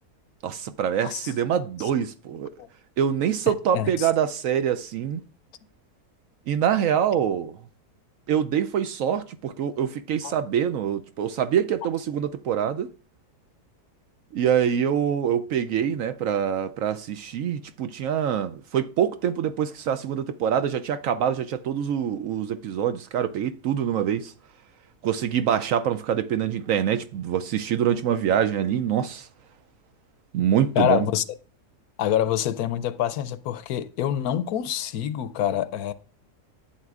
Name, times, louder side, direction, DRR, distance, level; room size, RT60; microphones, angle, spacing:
voice 1, 0.4-2.5 3.0-5.2 6.5-7.6 8.3-12.9 14.3-24.3 25.0-29.3 30.3-31.1, right 9 dB, 70° right, 0.9 m, -25 dB
voice 2, 1.0-1.3 2.6-2.7 3.5-4.1 10.2-10.4 30.8-31.2 32.0-35.9, left 10 dB, 75° left, 1.0 m, -26 dB
11.5 x 8.1 x 2.4 m
omnidirectional pair, 1.7 m